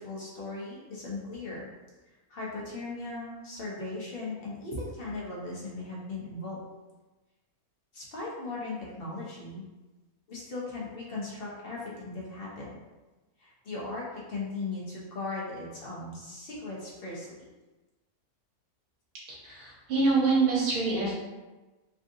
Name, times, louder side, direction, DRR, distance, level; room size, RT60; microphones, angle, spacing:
voice 1, 0.0-1.7 2.1-6.6 7.9-9.6 10.3-12.7 13.4-17.3, left 3 dB, 50° left, -5 dB, 0.8 m, -38 dB
voice 2, 19.4-21.1, right 3 dB, 85° right, -6 dB, 1.5 m, -25 dB
3.4 x 2.5 x 2.6 m, 1.2 s
omnidirectional pair, 1.6 m